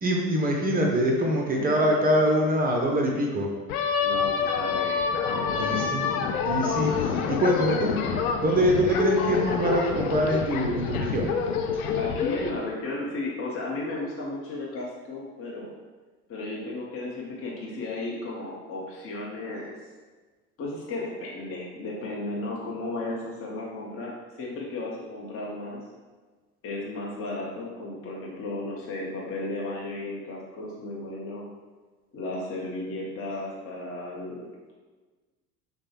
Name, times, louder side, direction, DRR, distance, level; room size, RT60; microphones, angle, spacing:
voice 1, 0.0-3.5 5.6-6.1 6.4-8.0 8.4-11.3, equal, 20° right, 0 dB, 0.6 m, -24 dB
voice 2, 1.5-2.1 4.0-5.1 5.5-5.9 11.9-15.8 16.3-19.7 20.6-24.1 24.4-25.8 26.6-31.4 32.1-34.7, left 2 dB, 30° left, -4 dB, 0.9 m, -34 dB
sound 1, 3.7-12.5, left 6 dB, 65° left, 0.6 m, -27 dB
6.2 x 2.3 x 2.9 m, 1.3 s
figure-of-eight pair, 70°, 46 cm